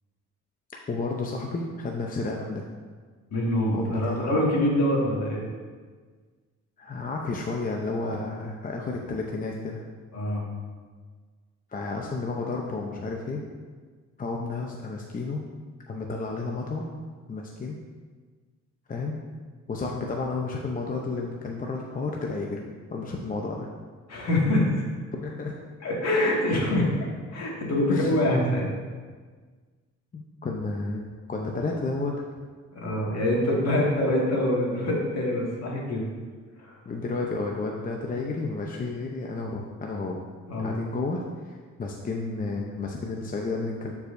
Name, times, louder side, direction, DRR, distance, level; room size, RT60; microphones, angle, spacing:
voice 1, 0.9-2.6 3.7-4.3 6.8-9.8 11.7-13.4 14.2-15.4 15.9-16.9 17.3-17.8 18.9-19.2 19.7-22.6 22.9-23.7 25.2-25.6 27.9-28.2 30.1-32.2 36.9-40.2 40.6-43.9, left 3 dB, 30° left, 0 dB, 0.7 m, -31 dB
voice 2, 3.3-5.4 10.1-10.5 24.1-24.8 25.8-28.7 32.7-36.1 36.6-36.8 40.5-40.8, left 1 dB, 60° left, -3 dB, 2.0 m, -25 dB
11.5 x 4.8 x 2.6 m, 1.5 s
cardioid pair, 90°, 30 cm